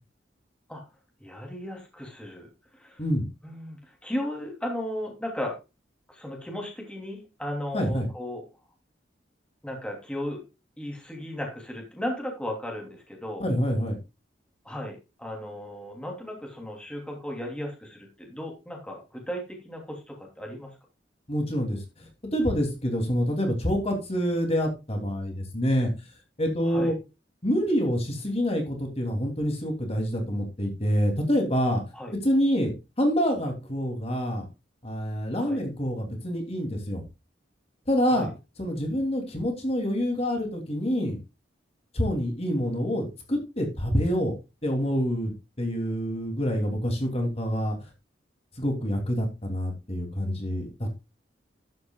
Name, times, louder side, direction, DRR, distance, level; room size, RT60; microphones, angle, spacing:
voice 1, 1.2-2.5 2.7-3.0 3.4-5.6 6.1-8.4 9.6-10.4 10.8-13.4 14.6-20.7 26.6-26.9 31.9-32.1 35.4-35.6 38.0-38.3, left 1 dB, 5° left, 1 dB, 3.0 m, -35 dB
voice 2, 7.7-8.1 13.4-14.0 21.3-25.9 26.4-26.9 27.4-31.8 32.2-34.4 34.8-37.0 37.9-38.3 38.6-41.2 41.9-44.3 44.6-47.8 48.6-51.0, equal, 35° left, 3 dB, 2.9 m, -27 dB
12.0 x 9.6 x 2.4 m, 0.27 s
head